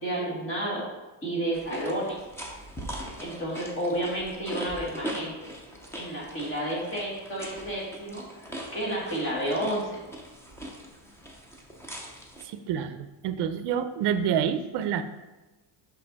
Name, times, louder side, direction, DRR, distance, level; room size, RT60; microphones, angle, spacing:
voice 1, 0.0-0.8 1.2-2.2 3.2-5.3 6.0-10.0, right 1 dB, 25° left, -4 dB, 2.0 m, -31 dB
sound 1, 1.5-12.4, right 1 dB, 5° left, 0.5 m, -41 dB
voice 2, 12.4-15.0, right 8 dB, 55° right, 10 dB, 0.6 m, -28 dB
5.8 x 5.6 x 4.0 m, 1.1 s
cardioid pair, 170°, 48 cm